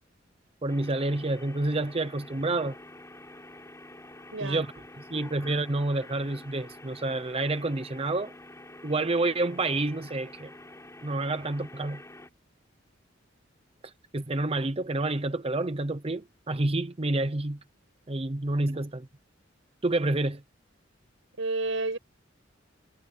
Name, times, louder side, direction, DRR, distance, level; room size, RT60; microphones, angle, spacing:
voice 1, 0.6-2.8 4.4-4.7 5.1-8.3 8.8-10.5 11.0-12.0 13.8-17.6 18.1-19.1 19.8-20.4, right 2 dB, 30° right, 0.7 m, -28 dB
sound 1, 0.7-12.3, left 1 dB, 15° left, 7.7 m, -48 dB
voice 2, 4.3-4.6 21.4-22.0, right 2 dB, 80° right, 5.7 m, -30 dB
head